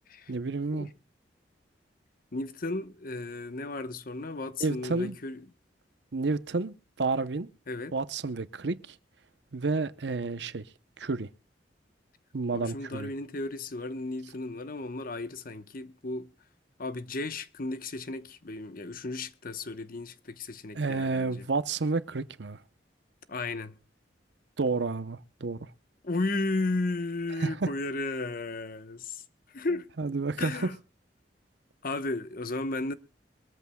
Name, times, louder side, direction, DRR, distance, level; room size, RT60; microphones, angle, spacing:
voice 1, 0.3-0.9 4.6-5.1 6.1-7.5 7.9-9.0 9.5-10.7 11.0-11.3 12.3-13.1 20.7-22.6 24.6-25.7 27.4-27.7 30.0-30.7, right 3 dB, 70° right, 0.8 m, -30 dB
voice 2, 2.3-5.4 7.7-7.9 12.5-16.3 16.8-21.4 23.3-23.8 26.0-29.2 29.5-29.9 30.4-30.8 31.8-32.9, left 2 dB, 50° left, 1.0 m, -34 dB
23.5 x 14.0 x 2.2 m
head